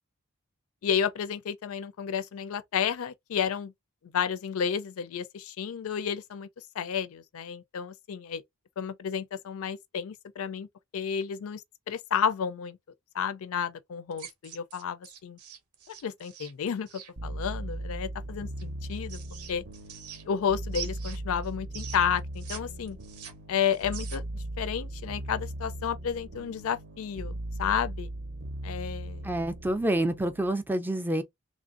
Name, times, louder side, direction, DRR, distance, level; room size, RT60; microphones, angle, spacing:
voice 1, 0.8-3.7 4.1-6.5 6.8-8.4 8.8-10.7 10.9-12.8 13.1-15.4 16.0-19.2 19.5-19.6 20.3-23.0 23.5-28.1 28.6-29.3, left 7 dB, 65° left, 0.4 m, -31 dB
sound 1, 14.1-17.1 18.6-20.4 20.7-22.6 22.9-24.4, right 9 dB, 90° right, 1.0 m, -44 dB
sound 2, 17.2-30.5, right 1 dB, 55° right, 0.6 m, -38 dB
voice 2, 29.2-31.2, right 1 dB, 10° right, 0.3 m, -28 dB
3.2 x 2.5 x 2.4 m
head